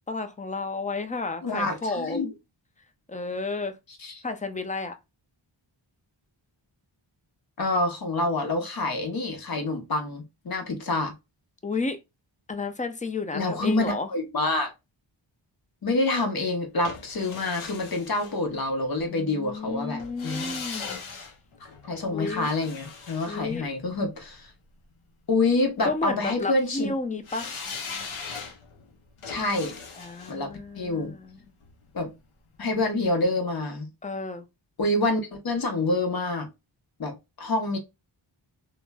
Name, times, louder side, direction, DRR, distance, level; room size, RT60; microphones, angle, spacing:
voice 1, 0.1-2.3 3.1-3.8 4.2-4.9 11.6-12.0 12.5-14.1 19.1-21.0 22.1-22.5 23.3-23.7 25.8-27.5 30.0-31.4 34.0-34.5, left 3 dB, 20° left, 0.3 m, -32 dB
voice 2, 1.4-2.3 4.0-4.2 7.6-11.1 13.3-14.7 15.8-20.6 21.9-24.5 25.3-26.9 29.2-29.8 30.3-31.2 31.9-32.1 32.6-33.9 34.8-36.5 37.0-37.8, left 2 dB, 45° left, 0.8 m, -27 dB
sound 1, 16.8-19.0 20.0-24.2 27.2-32.2 32.5-32.6, left 5 dB, 75° left, 0.7 m, -40 dB
3.0 x 2.0 x 2.2 m
wide cardioid pair, 60°, 50 cm